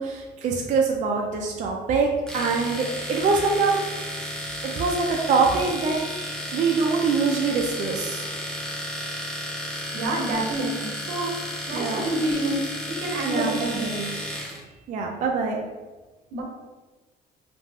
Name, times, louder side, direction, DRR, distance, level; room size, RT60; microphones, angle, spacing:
voice 1, 0.0-4.0 4.6-6.0 6.5-8.2 11.7-12.1 13.2-14.2 14.9-15.6, right 4 dB, 45° right, 0 dB, 0.4 m, -24 dB
Domestic sounds home sounds, 2.3-14.6, equal, 5° left, 0.6 m, -33 dB
voice 2, 9.9-11.3 11.7-13.9 16.3-16.4, right 1 dB, 80° right, 0 dB, 0.7 m, -28 dB
2.4 x 2.1 x 3.3 m, 1.2 s
cardioid pair, 110°, 17 cm